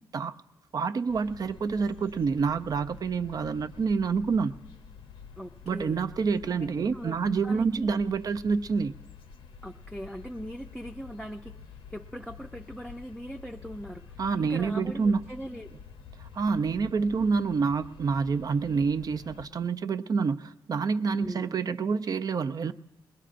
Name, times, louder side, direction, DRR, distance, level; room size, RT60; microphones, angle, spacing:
voice 1, 0.7-4.5 5.7-8.9 14.2-15.2 16.2-22.7, right 5 dB, 45° right, 10 dB, 0.4 m, -27 dB
sound 1, 1.1-19.5, left 6 dB, 85° left, 0.8 m, -49 dB
voice 2, 5.4-6.0 6.6-7.2 7.4-7.9 9.6-11.6 11.9-15.7 21.2-21.6, equal, ahead, 1 dB, 0.5 m, -40 dB
21.0 x 20.5 x 2.5 m, 1.1 s
cardioid pair, 85°, 9 cm